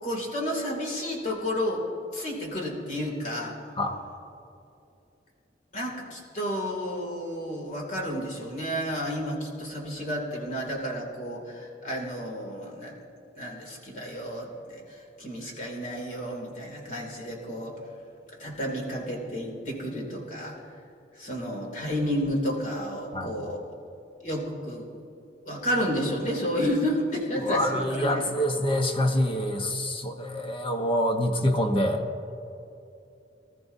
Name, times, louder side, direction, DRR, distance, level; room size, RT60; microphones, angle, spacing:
voice 1, 0.0-1.8 2.1-3.5 5.7-12.9 13.3-14.8 15.2-17.7 18.4-20.5 21.2-23.6 24.2-24.9 25.4-28.2, equal, 45° left, -1 dB, 2.8 m, -31 dB
voice 2, 27.4-32.0, equal, 30° left, 4 dB, 1.0 m, -26 dB
24.0 x 13.5 x 2.7 m, 2.7 s
head